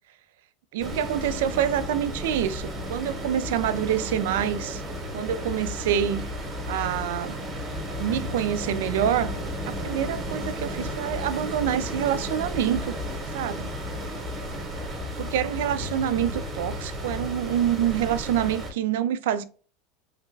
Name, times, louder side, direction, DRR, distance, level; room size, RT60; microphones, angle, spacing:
voice 1, 0.7-4.8 5.1-6.3 6.7-7.4 8.0-9.3 9.7-13.0 13.3-13.7 15.2-19.4, right 10 dB, 85° right, 0.3 m, -26 dB
sound 1, 0.8-18.7, equal, 25° right, 0.9 m, -33 dB
3.2 x 2.3 x 3.1 m
supercardioid pair, 135°, 0 cm